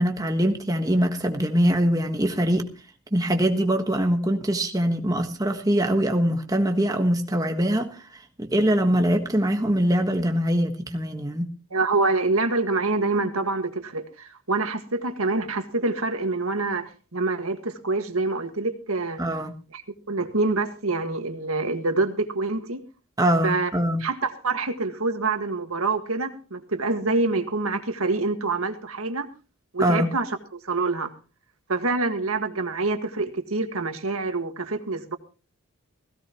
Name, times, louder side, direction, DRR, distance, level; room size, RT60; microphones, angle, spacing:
voice 1, 0.0-2.7 3.1-11.5 19.2-19.5 23.2-24.0 29.8-30.1, equal, 15° right, 1.3 m, -23 dB
voice 2, 11.7-19.2 19.7-19.8 20.1-22.8 23.4-23.7 24.0-29.3 29.7-31.1 31.7-35.2, right 3 dB, 75° right, 1.8 m, -26 dB
17.0 x 17.0 x 3.0 m
head